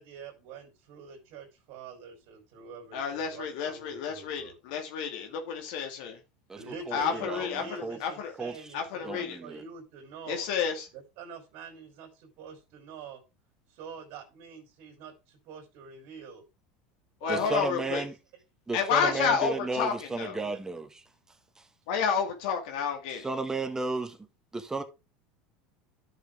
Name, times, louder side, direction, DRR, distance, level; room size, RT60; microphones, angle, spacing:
voice 1, 0.0-4.5 6.5-10.5 10.9-13.2 13.7-16.5 17.2-18.0 19.0-19.2 20.2-20.6, right 6 dB, 65° right, 3.6 m, -45 dB
voice 2, 2.9-4.4 4.7-6.2 6.9-8.3 8.7-9.4 10.3-10.9 17.2-18.0 18.7-20.4 21.9-23.3, left 6 dB, 70° left, 2.1 m, -30 dB
voice 3, 6.5-8.0 8.4-8.7 9.0-9.6 17.3-18.1 18.7-21.0 23.2-24.2 24.5-24.8, right 3 dB, 15° right, 1.7 m, -34 dB
11.0 x 6.6 x 3.6 m
supercardioid pair, 100°, 4 cm